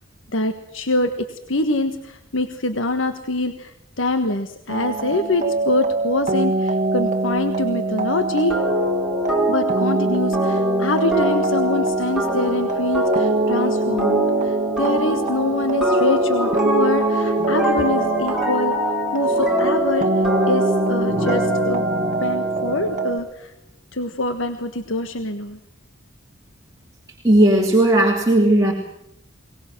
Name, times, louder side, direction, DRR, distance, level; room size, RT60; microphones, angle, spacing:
voice 1, 0.3-8.6 9.5-20.1 20.5-21.8 22.2-23.5 23.9-25.6, left 2 dB, 80° left, 8 dB, 1.4 m, -25 dB
sound 1, 4.7-23.2, right 3 dB, 40° right, 1.5 m, -24 dB
sound 2, 8.5-23.1, equal, ahead, 4.7 m, -24 dB
voice 2, 27.2-28.7, right 1 dB, 15° right, 0 dB, 2.8 m, -15 dB
22.5 x 19.5 x 7.7 m, 0.77 s
head